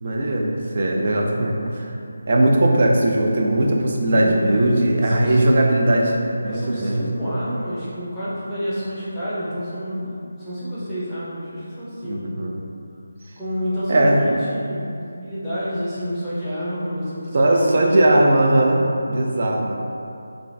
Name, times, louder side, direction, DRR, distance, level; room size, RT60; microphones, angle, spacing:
voice 1, 0.0-1.9 2.3-6.2 6.4-7.1 12.1-12.5 13.9-14.2 17.3-19.7, right 1 dB, 45° right, -1 dB, 0.3 m, -19 dB
voice 2, 4.1-5.4 6.4-12.3 13.4-14.9 15.1-18.3, equal, ahead, -16 dB, 0.7 m, -29 dB
2.5 x 2.3 x 3.1 m, 2.6 s
figure-of-eight pair, 165°, 0 cm